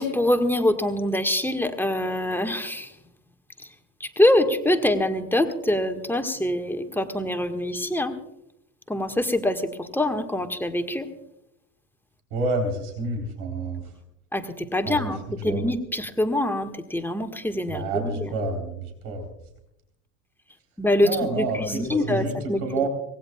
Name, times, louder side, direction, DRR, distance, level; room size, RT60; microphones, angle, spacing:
voice 1, 0.0-2.9 4.0-8.2 8.9-11.1 14.3-18.3 20.8-22.9, left 1 dB, 5° left, 5 dB, 1.5 m, -24 dB
voice 2, 12.3-13.8 14.9-15.0 15.4-15.6 17.7-19.3 21.0-22.9, right 3 dB, 60° right, 4 dB, 3.7 m, -28 dB
25.0 x 18.5 x 2.3 m, 0.82 s
figure-of-eight pair, 80°, 49 cm